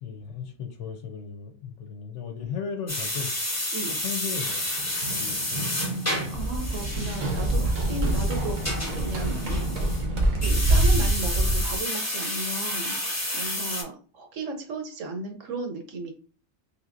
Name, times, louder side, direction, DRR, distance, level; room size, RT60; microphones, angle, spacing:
voice 1, 0.0-3.3 3.9-4.6 5.1-5.8, left 7 dB, 70° left, 0.8 m, -36 dB
sound 1, 2.9-10.0 10.4-13.8, left 1 dB, 15° left, 0.8 m, -31 dB
Run, 4.4-10.8, right 1 dB, 90° right, 1.3 m, -34 dB
sound 2, 6.3-11.8, right 1 dB, 50° right, 0.4 m, -25 dB
voice 2, 6.3-9.5 10.0-13.0 13.3-16.1, right 3 dB, 70° right, 1.1 m, -35 dB
3.4 x 2.9 x 2.5 m
omnidirectional pair, 1.4 m